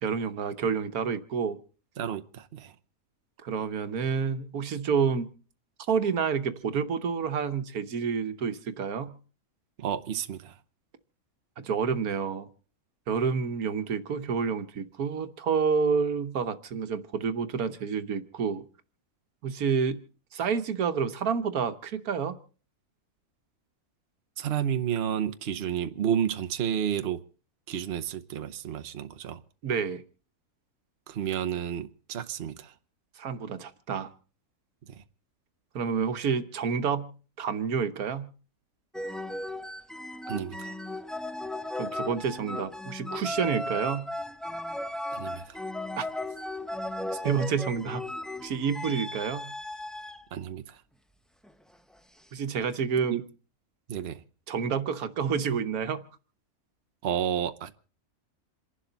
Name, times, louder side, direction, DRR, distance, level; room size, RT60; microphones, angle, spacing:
voice 1, 0.0-1.6 3.4-5.3 5.9-9.2 11.6-12.5 13.1-18.6 19.4-20.0 20.3-22.4 29.6-30.0 33.2-34.1 35.7-37.1 37.4-38.3 41.8-44.1 46.0-46.1 47.1-48.0 48.4-49.5 52.3-53.2 54.5-56.0, right 6 dB, 85° right, 1.5 m, -29 dB
voice 2, 2.0-2.7 9.8-10.6 24.4-27.2 27.7-29.4 31.1-32.7 34.8-35.0 40.3-40.8 45.1-45.6 50.3-50.8 53.1-53.2 53.9-54.2 57.0-57.7, right 9 dB, 50° right, 1.0 m, -31 dB
sound 1, 38.9-50.2 51.4-51.7, left 1 dB, ahead, 0.3 m, -36 dB
28.0 x 11.5 x 4.0 m
omnidirectional pair, 1.5 m